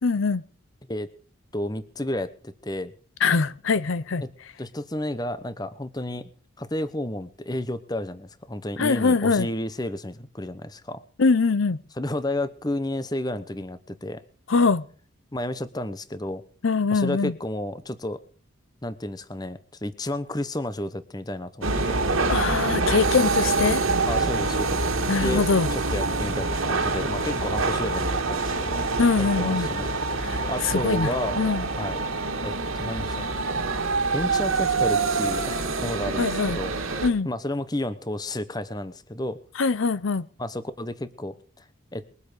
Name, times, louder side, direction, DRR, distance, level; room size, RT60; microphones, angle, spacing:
voice 1, 0.0-0.4 3.2-4.2 8.8-9.5 11.2-11.8 14.5-14.9 16.6-17.3 22.3-23.8 25.1-25.7 29.0-29.7 30.2-31.7 36.2-36.6 37.0-37.3 39.6-40.3, left 4 dB, 70° left, 0.6 m, -23 dB
voice 2, 1.5-2.9 4.2-4.3 4.6-6.3 6.6-11.0 12.0-14.2 15.3-16.4 16.9-18.2 18.8-22.0 24.1-24.8 25.2-25.4 25.7-28.8 29.2-29.9 30.5-31.4 31.8-32.0 32.4-33.2 34.1-36.7 37.2-39.4 40.4-41.6 41.9-42.0, left 1 dB, 20° left, 0.9 m, -31 dB
sound 1, 21.6-37.1, right 3 dB, 85° right, 2.3 m, -26 dB
21.5 x 8.4 x 6.8 m
head